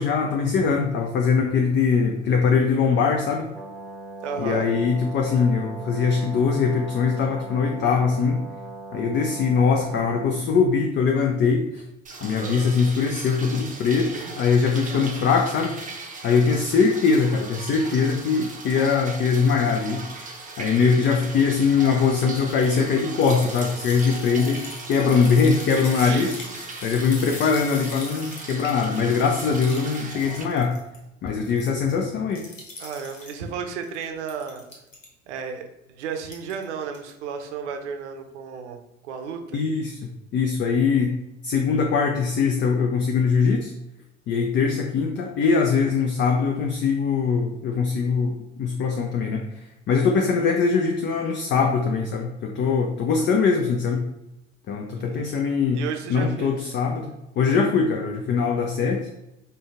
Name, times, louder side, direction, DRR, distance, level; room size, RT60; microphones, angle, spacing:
voice 1, 0.0-3.5 4.4-8.4 8.9-11.8 12.2-14.1 14.4-15.8 16.2-20.0 20.6-24.6 24.9-26.3 26.8-30.8 31.2-32.4 39.5-40.0 40.3-41.2 41.4-43.7 44.3-49.5 49.9-54.1 54.7-55.8 56.1-57.1 57.4-59.1, left 5 dB, 30° left, 2 dB, 0.5 m, -22 dB
Brass instrument, 3.5-10.5, right 2 dB, ahead, 1.2 m, -39 dB
voice 2, 4.2-4.7 13.8-14.4 25.9-26.3 32.8-34.6 35.3-39.6 55.0-55.4 55.7-56.7, right 6 dB, 65° right, 5 dB, 0.7 m, -33 dB
sound 1, 12.0-30.4, right 3 dB, 20° right, 0.8 m, -38 dB
sound 2, 22.3-31.0 31.3-31.9 32.3-33.4 33.8-35.1 36.2-36.6 36.9-37.1, left 2 dB, 80° left, 0.9 m, -41 dB
5.1 x 2.3 x 3.5 m, 0.92 s
figure-of-eight pair, 60°, 38 cm